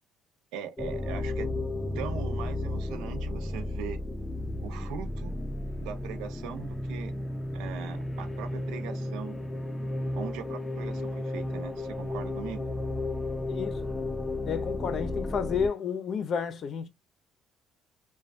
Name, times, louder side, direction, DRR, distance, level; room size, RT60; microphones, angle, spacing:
voice 1, 0.5-1.5 1.9-4.0 4.6-5.4 5.8-7.1 7.5-9.4 10.2-12.7, right 8 dB, 85° right, 0.5 m, -40 dB
sound 1, 0.8-15.7, left 2 dB, 15° left, 0.6 m, -33 dB
voice 2, 13.5-13.9 14.5-16.9, left 6 dB, 55° left, 0.6 m, -31 dB
3.1 x 2.2 x 2.5 m
supercardioid pair, 80°, 0 cm